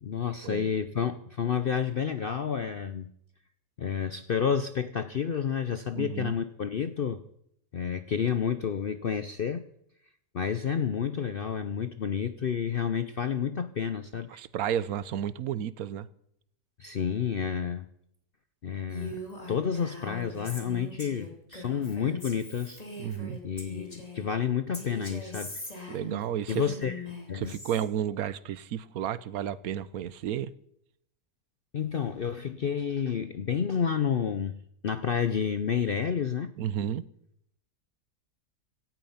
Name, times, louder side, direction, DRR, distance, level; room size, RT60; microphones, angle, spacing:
voice 1, 0.0-3.1 3.8-7.2 7.7-9.6 10.3-14.4 16.8-17.9 18.6-19.2 19.5-22.8 23.4-25.6 26.5-27.0 27.3-27.5 31.7-34.6 34.8-36.5, left 7 dB, 60° left, 0.6 m, -30 dB
voice 2, 5.9-6.3 14.4-16.1 23.0-23.4 25.9-26.6 27.3-30.5 36.6-37.0, right 10 dB, 70° right, 1.2 m, -32 dB
Female speech woman speaking, 18.9-24.3 24.7-27.8, left 1 dB, 25° left, 2.9 m, -41 dB
17.5 x 12.5 x 5.7 m
omnidirectional pair, 1.7 m